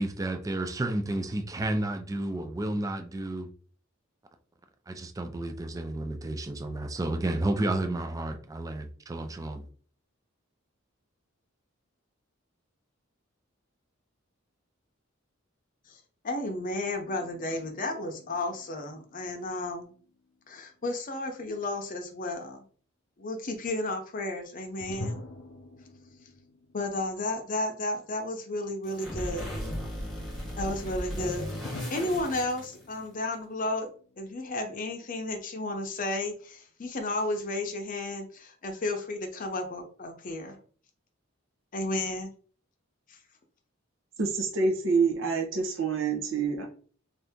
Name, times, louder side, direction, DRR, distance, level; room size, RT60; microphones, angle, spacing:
voice 1, 0.0-3.5 4.9-9.7, right 1 dB, 15° right, 0.3 m, -31 dB
voice 2, 15.9-19.9 20.5-22.6 23.2-25.2 26.7-29.5 30.6-31.4 31.9-33.9 34.2-40.6 41.7-42.3 43.1-43.2, left 2 dB, 40° left, 0.6 m, -33 dB
sound 1, 17.0-20.3 24.8-27.9 28.1-28.2 31.6-34.9, left 1 dB, 80° left, 0.6 m, -45 dB
sound 2, 28.8-33.1, equal, ahead, 1.1 m, -36 dB
voice 3, 44.2-46.6, right 4 dB, 65° right, 0.7 m, -27 dB
2.7 x 2.5 x 3.5 m
head